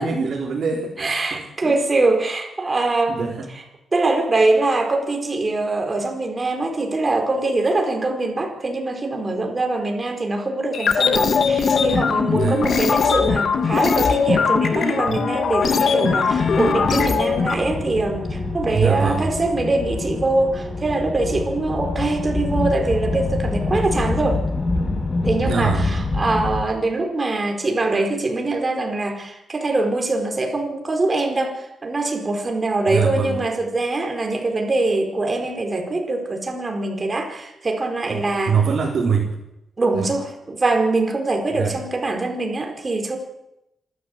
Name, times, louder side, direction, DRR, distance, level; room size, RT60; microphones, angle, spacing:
voice 1, 0.0-1.7 3.1-3.5 12.3-12.6 18.7-19.3 25.4-25.9 32.9-33.4 38.1-39.3 39.9-40.1 41.6-41.8, right 6 dB, 55° right, -3 dB, 4.1 m, -23 dB
voice 2, 1.0-3.6 3.9-24.4 25.2-38.6 39.8-43.2, right 2 dB, 30° right, 3 dB, 4.5 m, -23 dB
sound 1, 10.7-17.5, left 5 dB, 60° left, 2.1 m, -20 dB
sound 2, 16.3-26.6, left 3 dB, 25° left, 2.8 m, -26 dB
27.0 x 13.0 x 8.2 m, 0.87 s
cardioid pair, 120°, 0 cm